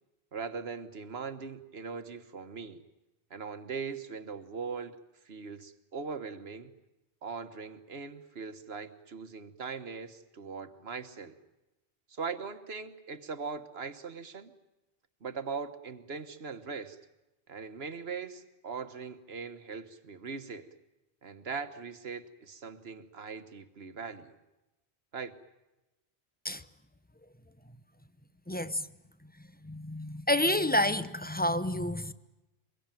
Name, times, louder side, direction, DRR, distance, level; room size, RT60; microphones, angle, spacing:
voice 1, 0.3-2.8 3.3-5.0 5.2-6.7 7.2-11.4 12.1-14.5 15.2-17.0 17.5-20.7 21.2-24.3 25.1-25.4, right 5 dB, 70° right, 1.6 m, -40 dB
voice 2, 28.5-28.9 29.6-32.1, left 1 dB, 10° left, 0.7 m, -29 dB
24.5 x 22.0 x 9.1 m
omnidirectional pair, 1.1 m